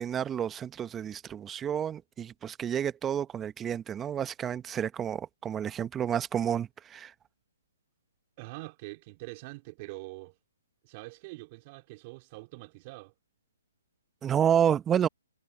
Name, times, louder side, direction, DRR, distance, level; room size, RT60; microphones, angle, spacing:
voice 1, 0.0-7.1 14.2-15.1, right 9 dB, 15° right, 1.1 m, -30 dB
voice 2, 8.4-10.4 10.8-13.1, right 24 dB, 35° right, 3.5 m, -44 dB
hypercardioid pair, 140°, 0 cm